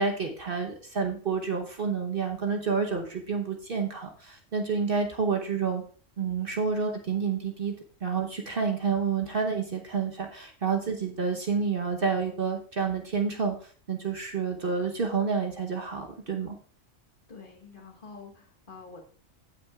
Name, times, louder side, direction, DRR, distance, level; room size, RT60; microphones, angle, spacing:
voice 1, 0.0-5.8 6.2-7.7 8.0-13.6 13.9-16.6, right 5 dB, 45° right, 3 dB, 1.1 m, -29 dB
voice 2, 17.3-19.0, left 4 dB, 40° left, 1 dB, 1.6 m, -47 dB
15.5 x 6.0 x 2.4 m, 0.43 s
omnidirectional pair, 1.4 m